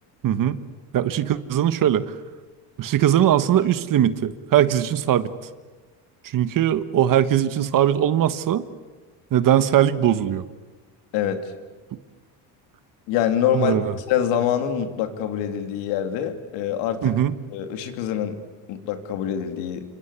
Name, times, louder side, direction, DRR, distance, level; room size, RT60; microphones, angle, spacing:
voice 1, 0.2-0.6 0.9-2.1 2.8-5.3 6.2-8.6 9.3-10.4 13.5-13.9 17.0-17.3, right 11 dB, 45° right, 13 dB, 1.5 m, -20 dB
voice 2, 13.1-13.8 14.1-17.1 17.5-18.4 18.7-19.8, left 9 dB, 80° left, 7 dB, 3.1 m, -25 dB
27.5 x 25.5 x 8.3 m, 1.3 s
cardioid pair, 120°, 44 cm